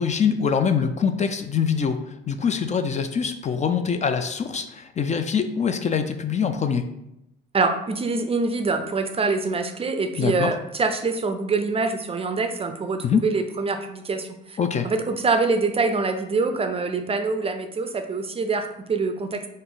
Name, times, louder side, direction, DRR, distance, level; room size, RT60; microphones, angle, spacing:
voice 1, 0.0-2.0 2.3-6.9 10.2-10.5 13.0-13.2 14.6-14.9, left 6 dB, 35° left, 8 dB, 0.4 m, -24 dB
voice 2, 7.5-14.6 14.8-19.5, right 4 dB, 30° right, 7 dB, 0.4 m, -25 dB
4.0 x 2.5 x 3.7 m, 0.84 s
cardioid pair, 90°, 20 cm